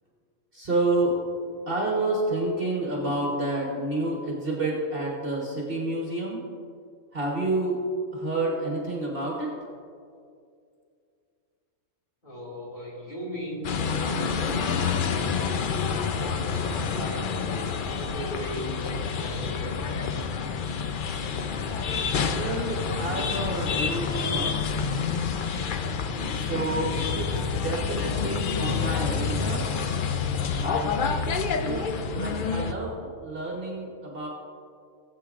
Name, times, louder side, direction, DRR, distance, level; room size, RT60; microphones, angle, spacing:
voice 1, 0.5-1.2 1.4-6.4 7.1-7.8 8.1-9.5 22.3-24.5 26.3-29.7 30.6-34.3, right 2 dB, 45° right, -3 dB, 1.3 m, -29 dB
voice 2, 12.2-15.8 16.2-19.8, equal, 35° left, -5 dB, 3.1 m, -38 dB
sound 1, 13.6-32.7, left 6 dB, 75° left, 0.4 m, -28 dB
16.5 x 8.0 x 2.5 m, 2.4 s
omnidirectional pair, 1.5 m